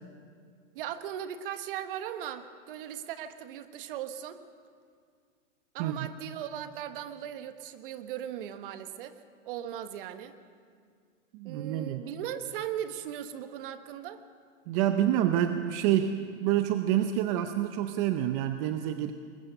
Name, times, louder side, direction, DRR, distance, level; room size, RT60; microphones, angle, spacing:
voice 1, 0.7-4.4 5.7-9.2 9.4-10.4 11.4-14.2, right 10 dB, 45° right, 10 dB, 1.2 m, -38 dB
voice 2, 11.3-12.0 14.7-19.1, right 11 dB, 25° right, 8 dB, 0.6 m, -27 dB
21.5 x 19.0 x 6.6 m, 2.1 s
hypercardioid pair, 145°, 39 cm